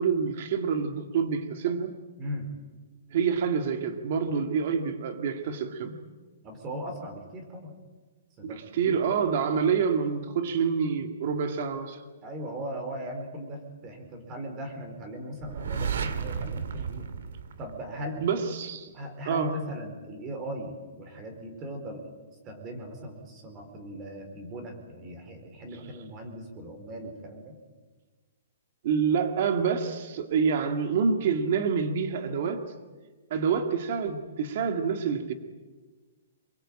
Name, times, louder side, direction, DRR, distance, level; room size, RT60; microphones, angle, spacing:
voice 1, 0.0-1.9 3.1-6.0 8.4-12.0 18.2-18.9 19.3-19.5 28.8-32.6 33.3-35.3, right 6 dB, 45° right, 7 dB, 2.1 m, -27 dB
voice 2, 6.4-7.7 8.4-8.9 12.2-17.1 17.6-18.2 18.9-22.0 22.4-27.6, equal, 20° right, 5 dB, 4.5 m, -38 dB
sound 1, 15.4-18.3, right 6 dB, 70° right, 2.3 m, -33 dB
28.0 x 22.0 x 9.0 m, 1.3 s
hypercardioid pair, 170°, 0 cm